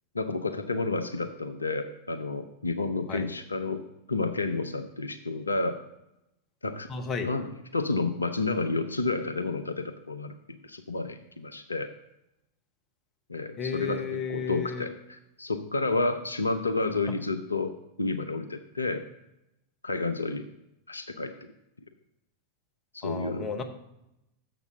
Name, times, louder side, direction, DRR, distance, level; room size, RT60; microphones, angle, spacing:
voice 1, 0.1-3.8 4.1-5.8 6.6-6.9 7.2-10.3 10.6-11.9 13.3-17.7 18.0-19.0 19.8-20.5 20.9-21.3 22.9-23.5, left 3 dB, 80° left, 8 dB, 0.5 m, -30 dB
voice 2, 6.9-7.3 13.6-14.8 23.0-23.6, left 5 dB, 30° left, 5 dB, 1.0 m, -33 dB
7.0 x 6.0 x 6.6 m, 0.87 s
figure-of-eight pair, 90°, 0 cm